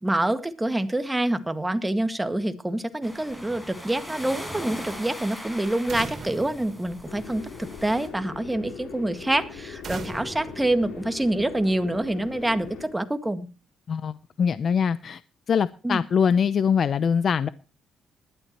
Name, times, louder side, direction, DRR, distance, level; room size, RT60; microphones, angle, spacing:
voice 1, 0.0-13.5 15.8-16.0, right 1 dB, 10° right, 9 dB, 1.9 m, -26 dB
sound 1, 3.0-8.1, equal, 10° left, 4.7 m, -40 dB
sound 2, 5.9-7.7 9.8-11.6, right 5 dB, 50° right, 3.0 m, -40 dB
sound 3, 7.0-12.9, left 6 dB, 75° left, 4.8 m, -40 dB
voice 2, 13.9-15.2 15.5-17.5, left 7 dB, 50° left, 16 dB, 0.6 m, -23 dB
20.0 x 12.5 x 3.0 m, 0.32 s
cardioid pair, 90°, 0 cm